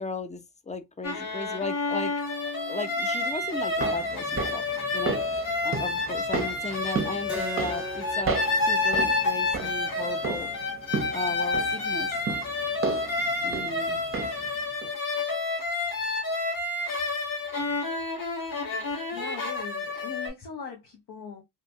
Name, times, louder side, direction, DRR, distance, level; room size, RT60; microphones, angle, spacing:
voice 1, 0.0-4.7 4.9-5.2 5.6-10.5 11.1-12.1 13.4-14.0, left 3 dB, 20° left, 0.4 m, -36 dB
sound 1, 1.0-20.3, left 3 dB, 60° left, 1.1 m, -29 dB
sound 2, 3.5-14.5 14.8-14.9, right 5 dB, 35° right, 0.6 m, -34 dB
Keyboard (musical), 7.3-12.4, equal, 5° right, 0.8 m, -41 dB
voice 2, 18.7-21.4, left 6 dB, 90° left, 0.8 m, -41 dB
2.8 x 2.2 x 2.5 m
cardioid pair, 75°, 38 cm